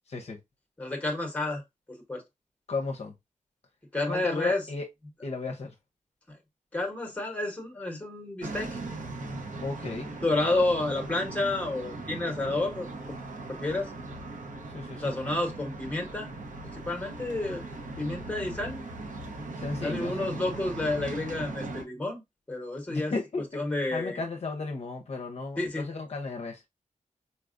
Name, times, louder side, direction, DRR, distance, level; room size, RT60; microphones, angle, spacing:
voice 1, 0.8-1.6 1.9-2.2 3.9-4.6 6.3-6.4 6.7-8.8 10.2-13.2 13.5-13.9 15.0-16.3 16.7-17.6 18.0-18.8 19.8-22.2 22.5-23.1 23.5-24.2 25.6-25.8, left 2 dB, 10° left, 0.9 m, -30 dB
voice 2, 2.7-3.1 4.1-4.9 5.2-5.7 9.6-10.1 12.1-12.5 14.7-15.4 19.6-20.3 22.9-23.6 23.9-26.6, left 3 dB, 50° left, 0.6 m, -35 dB
sound 1, 8.4-21.8, right 2 dB, 70° right, 0.8 m, -39 dB
4.1 x 2.3 x 2.4 m
wide cardioid pair, 150°, 14 cm